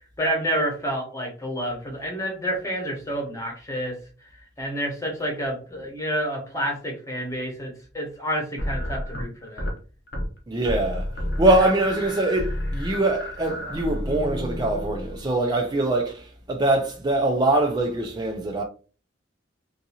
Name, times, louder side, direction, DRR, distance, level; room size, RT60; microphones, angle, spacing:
voice 1, 0.2-4.0 4.6-9.7, equal, 15° left, 1.0 m, -29 dB
sound 1, 8.6-9.8 10.1-10.4 10.6-15.4, equal, 60° left, 1.0 m, -30 dB
voice 2, 10.5-11.1 11.4-18.6, right 2 dB, 20° right, 0.4 m, -23 dB
3.6 x 2.6 x 2.7 m
head